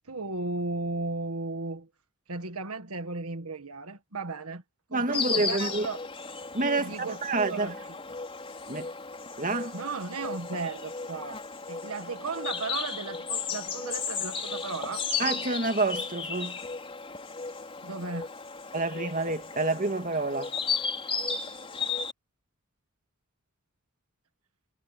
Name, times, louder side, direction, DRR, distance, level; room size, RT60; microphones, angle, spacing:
voice 1, 0.1-1.9 2.3-4.6 4.9-6.0 6.8-7.2 7.5-7.7 9.7-11.4 11.7-15.0 17.8-18.3, right 3 dB, 80° right, 1.7 m, -35 dB
voice 2, 4.9-5.9 6.5-7.7 8.7-8.9 9.4-9.8 15.2-16.6 18.7-20.5, right 3 dB, 35° right, 2.4 m, -28 dB
Insect, 5.1-22.1, left 5 dB, 25° left, 4.2 m, -35 dB
head